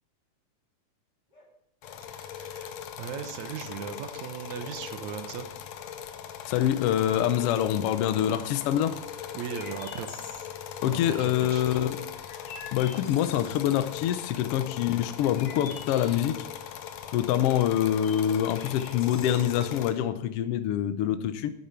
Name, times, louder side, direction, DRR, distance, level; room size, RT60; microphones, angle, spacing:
sound 1, 1.3-1.5 1.8-2.0 2.2-2.7 3.8-4.0 4.6-4.8 5.7-5.9 6.5-6.9 8.6-8.8 9.8-10.0 11.3-11.5 12.3-13.4 14.4-14.6 15.2-15.4 15.9-16.1 17.0-18.0 18.3-18.5 19.4-19.5, left 2 dB, 15° left, 2.1 m, -56 dB
sound 2, 1.8-19.9, left 9 dB, 70° left, 1.7 m, -40 dB
voice 1, 2.1-5.5 9.3-10.2 10.8-11.8, right 8 dB, 70° right, 9 dB, 2.1 m, -38 dB
voice 2, 6.5-8.9 10.8-12.0 12.7-16.5 17.1-21.5, left 11 dB, 85° left, 11 dB, 1.3 m, -25 dB
Chirp tweet, 9.4-20.0, left 5 dB, 50° left, 2.0 m, -48 dB
11.0 x 8.7 x 4.5 m, 0.80 s
omnidirectional pair, 3.6 m